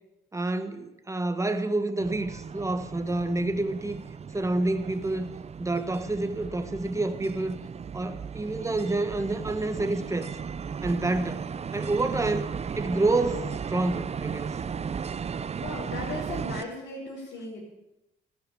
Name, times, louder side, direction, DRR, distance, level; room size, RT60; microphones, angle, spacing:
voice 1, 0.3-4.0 4.3-5.3 5.6-7.6 7.9-10.3 10.8-14.6, right 2 dB, 15° right, 1.5 m, -28 dB
sound 1, 2.0-16.6, right 6 dB, 30° right, 0.6 m, -36 dB
voice 2, 15.6-17.6, left 2 dB, 75° left, 5.3 m, -37 dB
14.0 x 14.0 x 7.1 m
cardioid pair, 90°, 20 cm